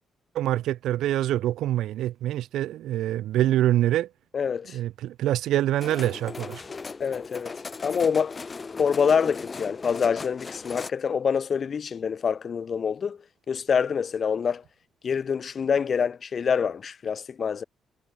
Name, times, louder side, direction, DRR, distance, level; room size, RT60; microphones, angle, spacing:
voice 1, 0.3-4.1 4.7-6.6, right 13 dB, 80° right, 0.6 m, -25 dB
voice 2, 4.3-4.8 7.0-8.4 8.8-13.2 13.5-14.6 15.0-17.6, left 6 dB, 45° left, 1.2 m, -26 dB
sound 1, 5.8-10.9, left 4 dB, 30° left, 0.8 m, -38 dB
cardioid pair, 90°, 0 cm